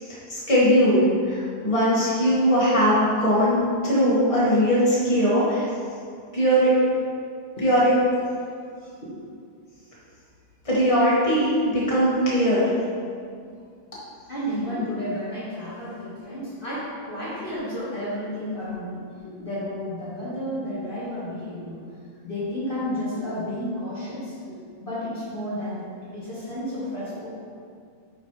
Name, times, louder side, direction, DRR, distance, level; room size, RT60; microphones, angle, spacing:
voice 1, 0.0-5.7 6.3-6.7 7.6-7.9 10.6-12.7, equal, 15° left, -8 dB, 1.3 m, -20 dB
voice 2, 14.3-21.8 22.2-27.3, left 1 dB, 35° left, -12 dB, 0.9 m, -32 dB
10.5 x 5.1 x 3.3 m, 2.3 s
omnidirectional pair, 3.5 m